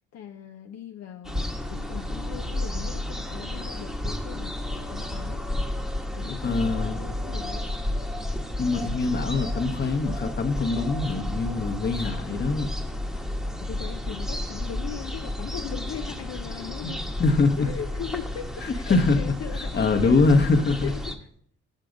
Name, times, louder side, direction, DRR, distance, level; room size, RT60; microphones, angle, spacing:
voice 1, 0.1-5.4 6.1-7.7 13.6-17.0 17.6-20.2 20.8-21.3, left 9 dB, 60° left, 4 dB, 0.6 m, -39 dB
sound 1, 1.2-21.2, left 1 dB, ahead, 1.1 m, -32 dB
voice 2, 6.4-7.0 8.6-12.7 16.8-16.9 17.2-17.7 18.6-19.3 19.7-20.9, left 3 dB, 35° left, 5 dB, 1.0 m, -23 dB
6.8 x 6.4 x 5.1 m, 0.63 s
cardioid pair, 80°, 30 cm